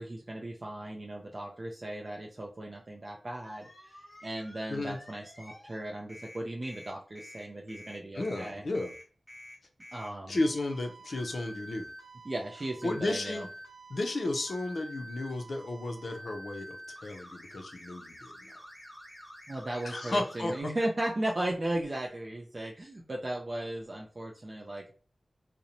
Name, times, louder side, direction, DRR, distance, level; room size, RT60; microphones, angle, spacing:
voice 1, 0.0-8.6 9.9-10.4 12.2-13.5 19.5-25.0, right 1 dB, 40° right, 0 dB, 0.4 m, -36 dB
sound 1, 3.4-5.8 6.1-20.6, equal, 10° left, 1.0 m, -49 dB
voice 2, 8.1-8.9 10.3-11.9 12.8-13.5 13.9-18.5 19.8-20.5, left 2 dB, 65° left, 4 dB, 0.5 m, -33 dB
2.5 x 2.0 x 2.8 m, 0.39 s
wide cardioid pair, 80°, 0 cm